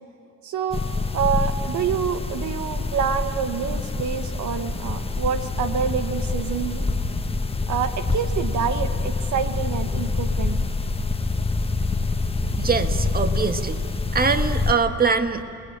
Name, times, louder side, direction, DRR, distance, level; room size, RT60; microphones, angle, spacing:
voice 1, 0.4-0.8 1.1-6.8 7.7-10.6, right 7 dB, 70° right, 9 dB, 1.3 m, -27 dB
sound 1, 0.7-14.7, left 3 dB, 20° left, 1.2 m, -26 dB
voice 2, 12.3-13.8 14.1-15.4, right 5 dB, 30° right, 8 dB, 1.6 m, -23 dB
28.0 x 20.5 x 8.9 m, 2.7 s
cardioid pair, 90°, 30 cm